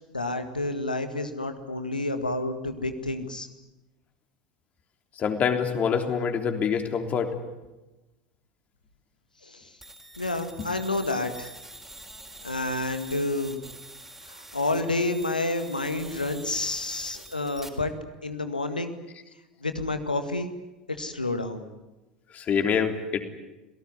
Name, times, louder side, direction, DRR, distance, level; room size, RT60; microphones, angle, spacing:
voice 1, 0.1-3.5 9.4-9.7 10.2-11.5 12.4-13.6 14.2-17.9 18.2-19.0 19.6-20.5 21.0-21.7, left 2 dB, 90° left, 8 dB, 2.0 m, -29 dB
voice 2, 5.2-7.3 10.6-10.7 22.3-23.2, left 7 dB, 35° left, 6 dB, 3.4 m, -25 dB
sound 1, 9.8-17.7, right 1 dB, 5° right, 4.5 m, -45 dB
27.5 x 18.0 x 9.8 m, 1.0 s
figure-of-eight pair, 80°, 4 cm